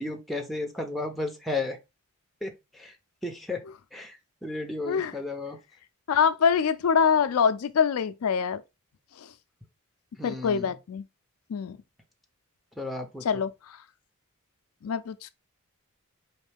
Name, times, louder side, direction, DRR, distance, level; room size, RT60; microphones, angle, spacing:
voice 1, 0.0-1.8 2.4-2.9 3.2-3.6 3.9-5.6 10.2-10.7 12.8-13.2, left 2 dB, ahead, 0.7 m, -33 dB
voice 2, 6.1-8.6 9.2-9.3 10.2-11.0 11.5-11.8 13.2-13.5 14.8-15.3, left 6 dB, 75° left, 0.4 m, -24 dB
4.4 x 3.2 x 3.4 m
head